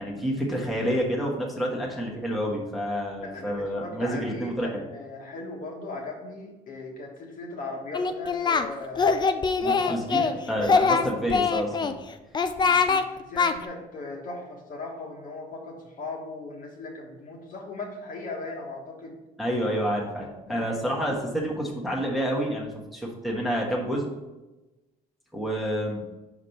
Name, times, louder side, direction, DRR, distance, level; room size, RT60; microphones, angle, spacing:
voice 1, 0.0-4.8 9.6-11.9 19.4-24.1 25.3-26.0, equal, ahead, -3 dB, 1.3 m, -29 dB
voice 2, 3.2-9.3 9.6-11.4 12.6-19.2 20.5-21.0, left 2 dB, 55° left, -1 dB, 1.6 m, -38 dB
Singing, 7.9-8.7 9.0-10.3 10.6-11.9 12.3-13.0 13.4-13.5, left 5 dB, 25° left, 0.5 m, -23 dB
5.1 x 4.9 x 5.7 m, 1.1 s
cardioid pair, 110°, 17 cm